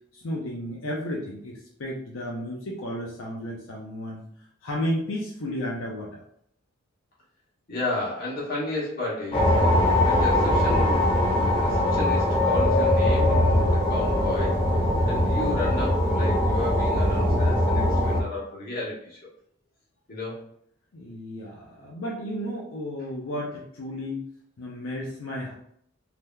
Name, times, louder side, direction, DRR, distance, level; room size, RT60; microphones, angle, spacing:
voice 1, 0.1-4.2 4.6-6.2 20.9-24.2 24.6-25.5, equal, 85° left, -3 dB, 0.6 m, -33 dB
voice 2, 7.7-19.3 20.1-20.4, left 2 dB, 50° left, -5 dB, 1.3 m, -33 dB
sound 1, 9.3-18.2, left 1 dB, 30° left, 0.6 m, -21 dB
3.5 x 2.8 x 2.2 m, 0.67 s
head